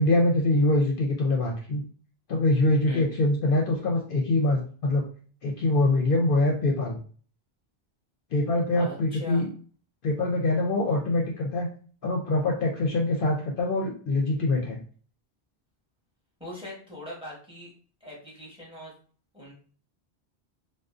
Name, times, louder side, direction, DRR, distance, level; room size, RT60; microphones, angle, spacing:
voice 1, 0.0-1.8 2.3-5.0 5.4-7.0 8.3-9.5 10.0-11.7 12.0-14.8, left 2 dB, 65° left, 0 dB, 0.7 m, -24 dB
voice 2, 8.7-9.5 16.4-17.7 18.0-18.9 19.3-19.5, equal, 5° right, -5 dB, 0.9 m, -41 dB
2.4 x 2.2 x 2.4 m, 0.43 s
omnidirectional pair, 1.1 m